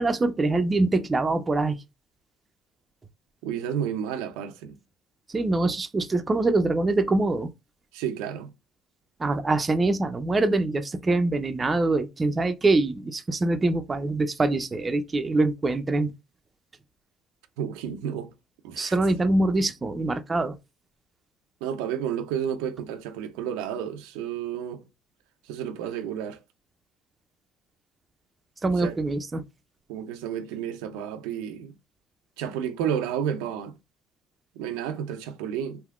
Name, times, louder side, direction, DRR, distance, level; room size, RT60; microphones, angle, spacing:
voice 1, 0.0-1.8 5.3-7.5 9.2-16.1 18.8-20.6 28.6-29.4, right 2 dB, 25° right, 0.5 m, -24 dB
voice 2, 3.4-4.8 7.9-8.5 17.6-18.3 18.6-19.0 21.6-24.8 25.4-26.4 28.8-29.0 29.9-31.7 32.4-33.7 34.6-35.8, right 9 dB, 85° right, 0.5 m, -31 dB
3.4 x 2.7 x 2.4 m
supercardioid pair, 75°, 0 cm